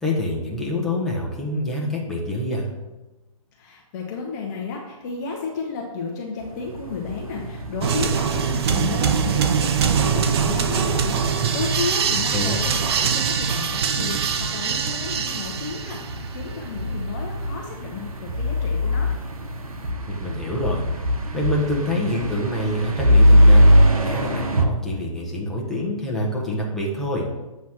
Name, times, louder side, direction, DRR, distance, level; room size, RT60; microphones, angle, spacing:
voice 1, 0.0-2.7 12.3-12.6 20.1-20.8 21.3-23.6 24.0-27.3, left 1 dB, ahead, -4 dB, 1.0 m, -26 dB
voice 2, 3.5-19.1, left 4 dB, 30° left, 0 dB, 0.8 m, -32 dB
sound 1, 6.4-24.7, equal, 90° right, 0.9 m, -23 dB
sound 2, 7.8-16.3, right 7 dB, 45° right, 0.5 m, -23 dB
7.6 x 3.1 x 5.7 m, 1.1 s
hypercardioid pair, 145°, 18 cm